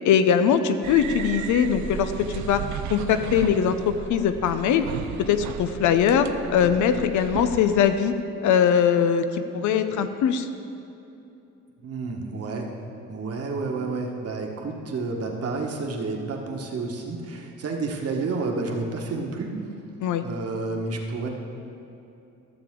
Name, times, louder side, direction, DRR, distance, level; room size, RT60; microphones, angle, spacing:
voice 1, 0.0-2.6 2.9-4.9 5.2-8.1 8.4-10.5 20.0-20.2, left 8 dB, 75° left, 9 dB, 0.6 m, -21 dB
sound 1, 0.8-7.8, right 7 dB, 70° right, 0.6 m, -35 dB
voice 2, 11.8-12.7 13.1-19.6 20.2-21.3, right 3 dB, 50° right, 1 dB, 1.4 m, -30 dB
14.5 x 6.9 x 3.7 m, 2.8 s
cardioid pair, 90°, 30 cm